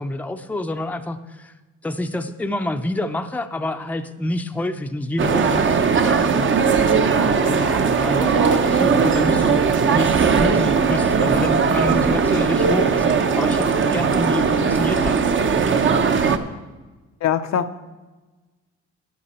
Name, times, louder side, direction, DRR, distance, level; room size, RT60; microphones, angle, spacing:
voice 1, 0.0-1.5 1.8-6.7 7.1-9.6 9.9-13.1 13.4-15.2, left 1 dB, 5° left, 7 dB, 0.6 m, -27 dB
sound 1, 5.2-16.4, right 5 dB, 40° right, 0.8 m, -18 dB
voice 2, 17.2-17.8, left 9 dB, 65° left, 9 dB, 0.7 m, -22 dB
10.5 x 10.5 x 4.3 m, 1.2 s
cardioid pair, 90°, 30 cm